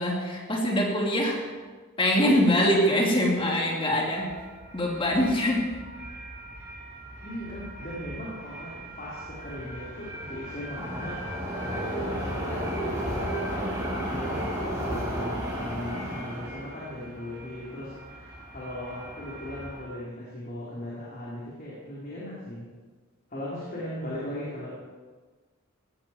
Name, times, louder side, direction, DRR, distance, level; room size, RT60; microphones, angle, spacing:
voice 1, 0.0-1.4 2.0-4.3 4.7-5.8, equal, 25° left, -1 dB, 2.7 m, -24 dB
sound 1, 4.0-19.8, equal, 15° right, 6.1 m, -35 dB
voice 2, 7.2-13.6 14.0-14.4 14.7-22.7 23.3-24.7, left 1 dB, 40° left, -7 dB, 3.7 m, -38 dB
17.5 x 13.5 x 4.5 m, 1.4 s
head